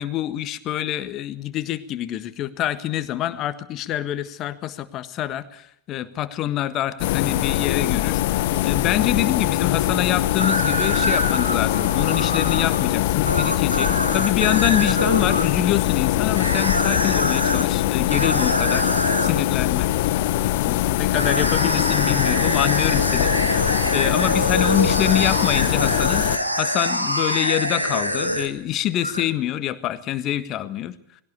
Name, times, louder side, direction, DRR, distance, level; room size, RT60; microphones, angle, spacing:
voice 1, 0.0-18.9 19.2-19.9 20.6-30.9, left 12 dB, 35° left, 12 dB, 1.5 m, -26 dB
sound 1, 7.0-26.4, left 14 dB, 50° left, 0.9 m, -22 dB
sound 2, 10.4-15.5 16.4-17.7 18.1-19.4 21.1-28.7 29.0-29.2, equal, 90° right, 2.3 m, -25 dB
21.0 x 17.0 x 8.5 m, 0.66 s
figure-of-eight pair, 90°, 0 cm